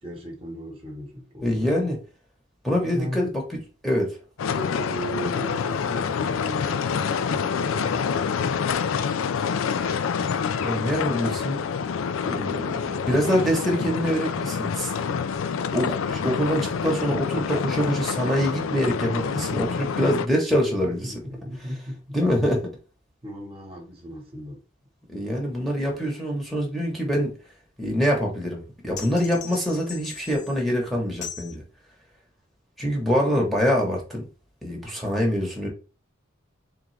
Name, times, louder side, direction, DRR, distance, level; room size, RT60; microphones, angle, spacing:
voice 1, 0.0-1.9 2.8-3.3 4.5-8.5 20.6-22.2 23.2-24.6, equal, 30° right, 1.1 m, -36 dB
voice 2, 1.4-2.0 2.6-3.4 3.8-4.1 10.6-11.6 12.2-14.9 15.7-21.1 22.1-22.6 25.1-27.3 27.8-31.6 32.8-34.3 34.6-35.7, equal, ahead, 1.0 m, -25 dB
sound 1, 4.4-20.3, left 6 dB, 80° left, 0.4 m, -27 dB
sound 2, 29.0-30.6 31.2-31.6, left 7 dB, 40° left, 0.7 m, -39 dB
3.7 x 3.4 x 3.2 m
head